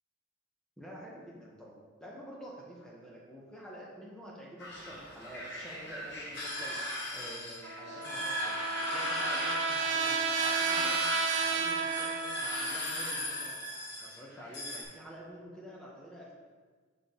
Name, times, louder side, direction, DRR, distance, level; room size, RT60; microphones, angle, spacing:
voice 1, 0.8-1.7 2.0-6.8 7.1-11.1 11.4-13.6 14.0-16.3, right 1 dB, 5° left, -5 dB, 1.3 m, -48 dB
sound 1, 4.6-14.8, left 1 dB, 55° left, 1.4 m, -37 dB
Trumpet, 7.6-12.8, right 5 dB, 65° right, 0.5 m, -32 dB
6.3 x 6.2 x 3.9 m, 1.5 s
head